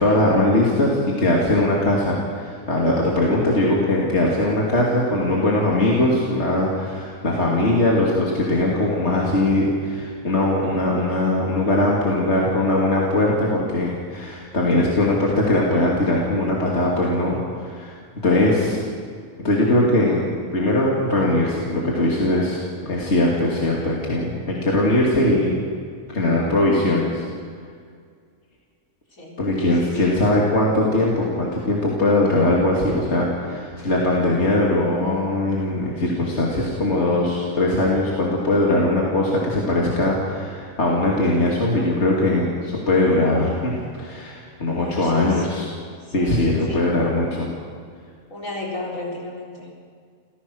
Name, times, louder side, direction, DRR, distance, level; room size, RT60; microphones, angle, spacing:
voice 1, 0.0-17.9 18.2-18.8 19.4-22.6 22.9-25.5 26.1-27.2 29.4-43.7 44.0-45.7 46.1-47.5, left 1 dB, 50° left, -3 dB, 3.0 m, -20 dB
voice 2, 29.8-30.2 44.6-45.7 46.0-46.8 48.3-49.8, left 3 dB, 70° left, -3 dB, 4.8 m, -33 dB
28.5 x 16.0 x 6.4 m, 2.1 s
omnidirectional pair, 1.4 m